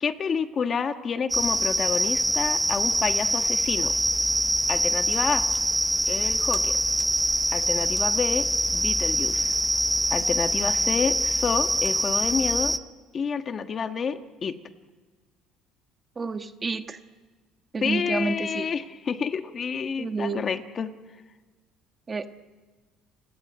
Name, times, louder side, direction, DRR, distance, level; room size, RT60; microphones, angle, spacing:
voice 1, 0.0-3.9 4.7-5.4 6.1-6.8 7.5-8.5 8.7-9.6 10.1-12.8 13.1-14.5 17.8-20.9, left 6 dB, 35° left, 8 dB, 1.3 m, -29 dB
sound 1, 1.3-12.8, right 1 dB, 5° right, 0.8 m, -24 dB
voice 2, 16.2-17.0 17.7-18.7 20.0-20.5 22.1-22.3, right 4 dB, 25° right, 8 dB, 1.3 m, -29 dB
29.5 x 18.0 x 9.4 m, 1.4 s
cardioid pair, 130°, 0 cm